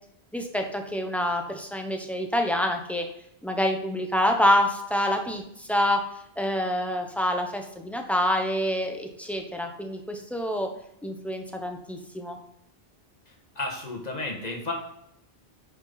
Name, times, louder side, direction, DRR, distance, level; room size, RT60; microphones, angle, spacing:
voice 1, 0.3-3.1 3.4-6.0 6.4-10.7 11.0-12.4, left 1 dB, ahead, 3 dB, 0.9 m, -27 dB
voice 2, 13.3-14.7, left 2 dB, 40° left, 0 dB, 1.7 m, -33 dB
8.8 x 5.5 x 4.1 m, 0.75 s
omnidirectional pair, 1.1 m